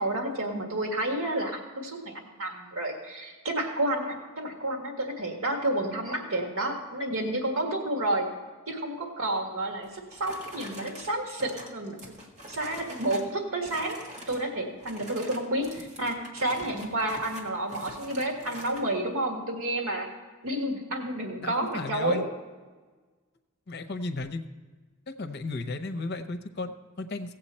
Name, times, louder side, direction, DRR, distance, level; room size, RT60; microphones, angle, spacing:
voice 1, 0.0-8.3 8.7-12.0 12.5-20.1 20.4-22.3, right 1 dB, 90° right, 2 dB, 1.7 m, -30 dB
sound 1, 9.8-13.3 13.6-14.5 14.8-18.9, equal, 35° right, 1.6 m, -45 dB
voice 2, 21.4-22.2 23.7-24.4 25.1-27.3, left 3 dB, 50° left, 9 dB, 0.7 m, -34 dB
17.0 x 7.8 x 4.3 m, 1.4 s
head